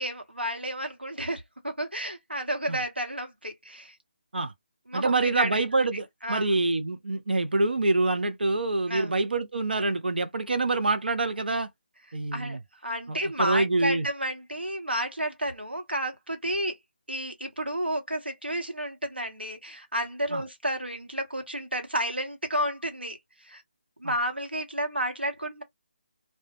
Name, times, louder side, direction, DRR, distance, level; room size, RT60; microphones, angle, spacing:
voice 1, 0.0-4.0 4.9-5.6 6.2-6.5 8.9-9.2 12.3-16.8 17.1-23.6 24.0-25.6, right 1 dB, 90° right, 0.9 m, -31 dB
voice 2, 4.9-11.7 12.1-12.6 13.1-14.1 20.3-20.4 24.0-24.1, right 2 dB, 70° right, 0.4 m, -26 dB
2.1 x 2.1 x 2.8 m
figure-of-eight pair, 150°, 6 cm